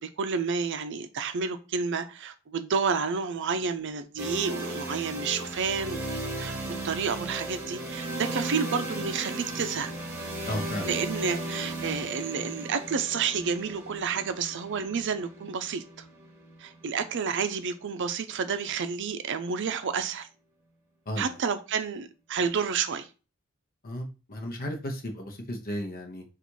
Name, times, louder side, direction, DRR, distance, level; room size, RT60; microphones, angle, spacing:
voice 1, 0.0-6.0 6.4-6.6 6.8-9.9 10.8-16.1 16.6-20.3 21.2-23.1, right 5 dB, 60° right, 0.5 m, -30 dB
sound 1, 4.2-18.0, right 1 dB, 15° right, 1.3 m, -36 dB
voice 2, 10.4-10.9 21.1-21.4 23.8-26.2, equal, 45° left, 0.8 m, -34 dB
4.1 x 2.5 x 4.5 m
head